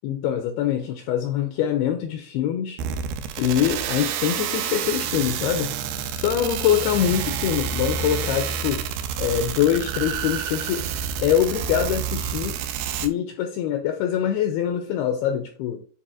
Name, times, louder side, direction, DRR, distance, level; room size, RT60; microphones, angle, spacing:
voice 1, 0.0-2.8 3.4-5.7 6.1-8.9 9.2-10.9 11.2-12.6 13.0-15.8, left 10 dB, 85° left, 2.2 m, -24 dB
sound 1, 2.8-13.1, right 8 dB, 85° right, 2.3 m, -29 dB
9.9 x 4.1 x 2.5 m
omnidirectional pair, 5.1 m